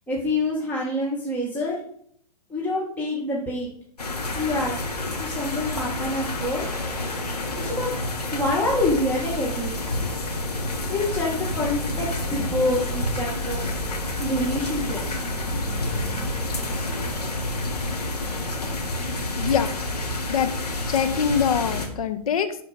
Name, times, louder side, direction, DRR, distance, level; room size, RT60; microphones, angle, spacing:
voice 1, 0.1-1.8 2.5-3.7 4.3-4.8 5.2-6.6 7.5-7.9 8.3-9.8 10.9-13.6 14.2-15.0, left 1 dB, 10° left, -5 dB, 1.8 m, -26 dB
sound 1, 4.0-21.9, left 1 dB, 80° left, 2.4 m, -29 dB
voice 2, 19.4-19.7 20.3-20.5 20.9-22.6, left 7 dB, 60° left, 9 dB, 0.9 m, -23 dB
11.0 x 4.6 x 5.2 m, 0.66 s
figure-of-eight pair, 120°, 20 cm